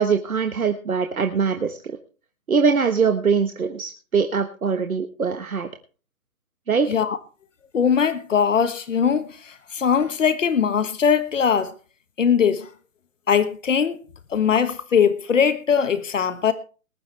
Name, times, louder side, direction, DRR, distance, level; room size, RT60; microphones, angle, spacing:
voice 1, 0.0-2.0 2.5-5.7 6.7-6.9, right 5 dB, 90° right, 1.4 m, -22 dB
voice 2, 7.7-11.7 12.2-12.7 13.3-14.0 14.3-16.5, left 7 dB, 65° left, 1.4 m, -21 dB
19.5 x 11.5 x 3.4 m
hypercardioid pair, 150°, 42 cm